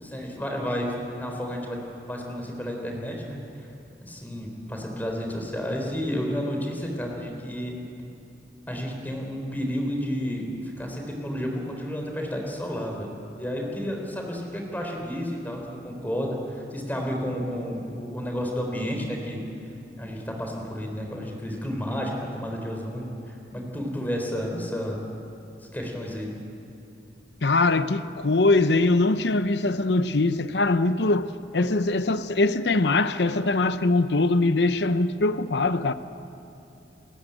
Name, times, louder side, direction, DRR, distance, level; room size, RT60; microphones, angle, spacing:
voice 1, 0.0-1.8 2.1-3.4 4.0-7.8 8.7-19.4 20.0-25.1 25.7-26.3, equal, 10° left, 3.9 m, -31 dB
voice 2, 27.4-35.9, left 2 dB, 75° left, 0.8 m, -22 dB
29.0 x 14.0 x 9.0 m
head